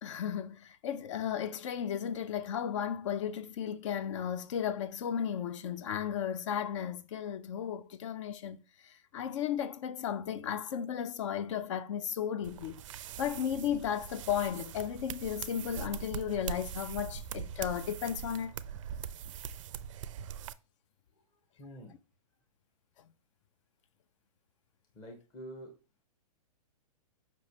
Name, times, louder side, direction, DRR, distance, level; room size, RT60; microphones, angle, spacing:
voice 1, 0.0-12.8 13.2-18.5, left 9 dB, 50° left, 0.4 m, -35 dB
sound 1, 12.4-20.5, right 8 dB, 55° right, 0.4 m, -42 dB
voice 2, 21.6-22.0 24.9-25.8, equal, 20° left, 0.9 m, -47 dB
5.2 x 3.0 x 2.7 m
hypercardioid pair, 135°, 20 cm